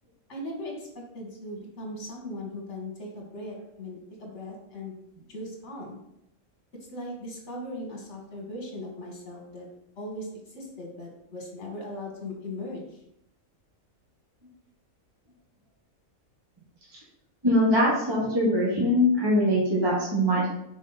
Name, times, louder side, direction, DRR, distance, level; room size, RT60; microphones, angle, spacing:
voice 1, 0.3-5.0 5.3-6.0 6.9-9.7 10.0-13.0, left 1 dB, 55° left, 0 dB, 1.9 m, -38 dB
voice 2, 17.4-20.5, equal, 20° right, -6 dB, 1.3 m, -22 dB
6.1 x 4.3 x 4.1 m, 0.80 s
omnidirectional pair, 1.5 m